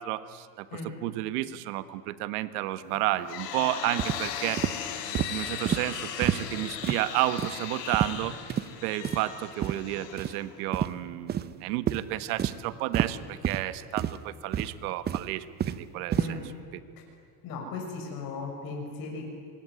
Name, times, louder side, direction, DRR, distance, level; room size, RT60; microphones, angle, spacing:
voice 1, 0.0-4.6 5.3-8.4 8.8-16.4 16.7-16.8, right 15 dB, 65° right, 13 dB, 1.5 m, -31 dB
sound 1, 2.9-10.8, left 8 dB, 80° left, 3.9 m, -38 dB
sound 2, 4.0-4.2 4.6-4.7 5.1-5.3 5.7-5.8 6.2-6.4 6.8-7.0 7.4-7.6 7.9-8.2 8.5-8.7 9.0-9.2 9.6-9.8 10.2-10.3 10.7-10.9 11.3-11.5 11.9-12.0 12.4-12.5 12.9-13.1 13.4-13.6 14.0-14.2 14.5-14.7 15.1-15.8 16.1-16.3, right 9 dB, 20° right, 0.7 m, -28 dB
voice 2, 17.4-19.3, left 3 dB, 45° left, 0 dB, 6.8 m, -36 dB
26.0 x 22.5 x 9.6 m, 2.2 s
supercardioid pair, 135°, 49 cm